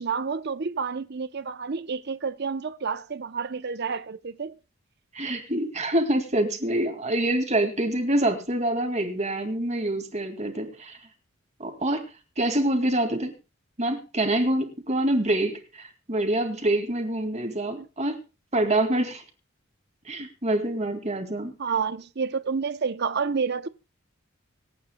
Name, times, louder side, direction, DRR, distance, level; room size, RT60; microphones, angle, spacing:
voice 1, 0.0-4.5 17.8-17.9 21.6-23.7, right 5 dB, 55° right, 0.7 m, -29 dB
voice 2, 5.1-11.0 11.6-12.0 12.4-13.3 13.8-18.2 18.5-19.2 20.0-21.5, right 1 dB, 35° right, 2.2 m, -26 dB
26.0 x 8.7 x 2.2 m
head